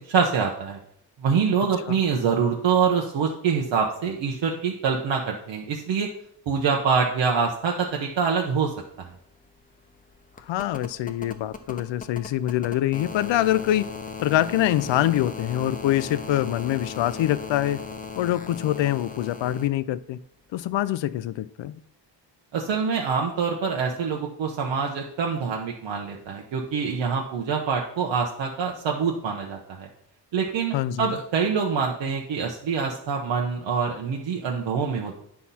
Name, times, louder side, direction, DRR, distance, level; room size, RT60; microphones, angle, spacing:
voice 1, 0.1-0.8 1.2-6.1 6.5-9.1 22.5-29.9 30.3-35.2, right 6 dB, 80° right, 1.1 m, -25 dB
sound 1, 8.8-19.7 21.1-21.2, left 4 dB, 20° left, 0.7 m, -38 dB
voice 2, 10.5-13.9 14.2-17.8 18.2-20.2 20.5-21.8 30.7-31.1, left 13 dB, 90° left, 0.5 m, -25 dB
9.6 x 5.8 x 4.2 m
wide cardioid pair, 145°, 43 cm